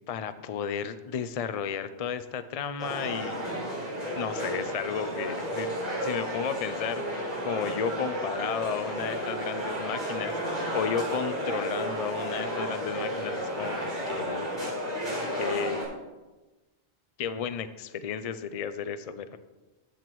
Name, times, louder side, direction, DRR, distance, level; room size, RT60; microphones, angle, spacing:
voice 1, 0.1-3.6 4.1-5.7 6.0-13.8 14.1-14.7 15.0-15.8 17.2-19.3, left 7 dB, 55° left, 11 dB, 0.4 m, -33 dB
sound 1, 2.8-15.8, equal, 45° right, 3.9 m, -32 dB
13.5 x 7.6 x 3.1 m, 1.1 s
omnidirectional pair, 1.1 m